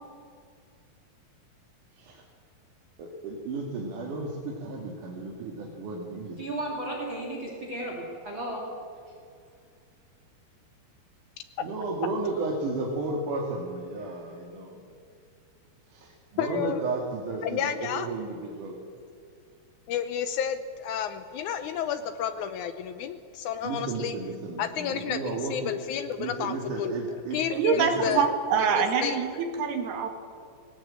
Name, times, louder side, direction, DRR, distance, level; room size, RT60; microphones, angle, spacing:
voice 1, 3.0-6.4 11.6-14.9 15.9-18.8 23.6-25.7 26.2-27.4 27.7-28.1, right 3 dB, 55° right, -1 dB, 3.3 m, -33 dB
voice 2, 6.4-8.6, right 1 dB, 30° right, -2 dB, 3.6 m, -34 dB
voice 3, 16.4-16.8 17.4-18.1 19.9-24.2 24.6-26.9 27.3-28.3 28.7-29.2, left 8 dB, 80° left, 9 dB, 1.7 m, -31 dB
voice 4, 27.5-30.1, right 6 dB, 80° right, 5 dB, 4.0 m, -25 dB
19.5 x 18.5 x 8.7 m, 2.2 s
omnidirectional pair, 4.6 m